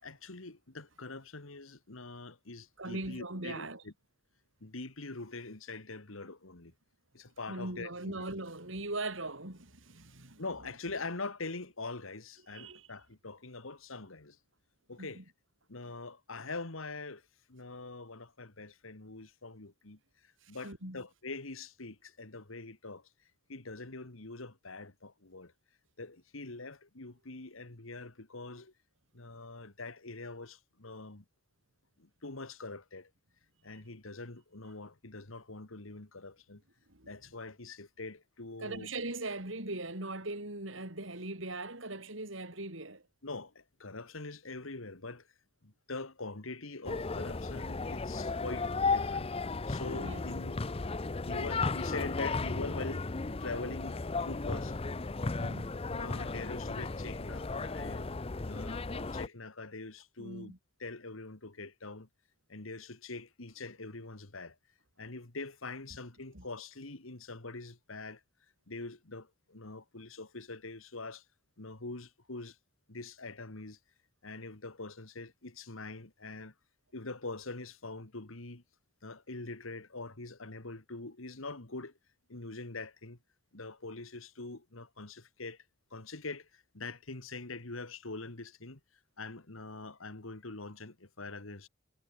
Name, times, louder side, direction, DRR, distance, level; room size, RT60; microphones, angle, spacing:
voice 1, 0.0-3.9 4.6-6.7 7.1-8.1 10.4-14.4 14.9-15.2 15.7-23.1 23.5-25.5 26.0-28.7 29.1-31.2 32.0-33.1 33.6-36.6 37.1-38.9 43.2-45.3 45.6-50.6 51.3-54.8 55.9-58.1 58.4-60.5 60.8-62.1 62.5-64.6 65.0-68.2 68.7-71.2 71.6-72.6 72.9-73.8 74.2-76.5 76.9-78.6 79.0-81.9 82.3-83.2 83.5-85.6 85.9-88.8 89.2-91.7, left 3 dB, 75° left, 2.2 m, -44 dB
voice 2, 2.8-3.8 7.5-10.4 12.5-12.9 15.0-15.2 20.4-21.0 33.7-33.8 36.9-37.1 38.6-43.0 49.9-50.2 55.4-55.8 60.2-60.6 66.3-66.4, right 2 dB, 65° right, 5.0 m, -40 dB
sound 1, 46.8-59.3, left 3 dB, 30° left, 0.6 m, -35 dB
head